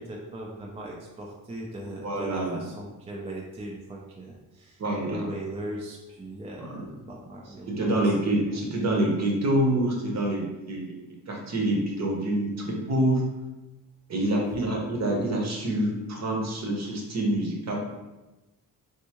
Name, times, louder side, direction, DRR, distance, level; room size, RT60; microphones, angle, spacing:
voice 1, 0.0-8.1 8.5-8.6 14.4-14.7, right 1 dB, 15° right, -1 dB, 0.3 m, -39 dB
voice 2, 2.0-2.6 4.8-5.3 6.6-6.8 7.7-13.2 14.1-17.8, right 1 dB, 45° right, -1 dB, 0.9 m, -26 dB
3.5 x 2.6 x 2.9 m, 1.1 s
cardioid pair, 110°, 37 cm